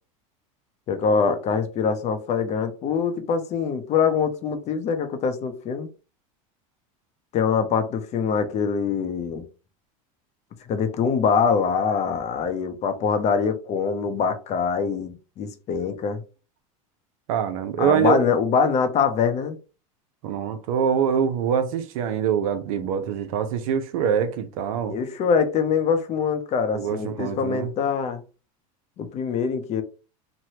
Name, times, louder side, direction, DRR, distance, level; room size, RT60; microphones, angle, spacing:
voice 1, 0.9-5.9 7.3-9.5 10.7-16.2 17.8-19.6 24.9-28.2 29.0-29.8, left 6 dB, 40° left, 0.7 m, -24 dB
voice 2, 17.3-18.2 20.2-25.0 26.7-27.7, right 8 dB, 75° right, 0.6 m, -24 dB
3.1 x 2.2 x 2.8 m
supercardioid pair, 110°, 18 cm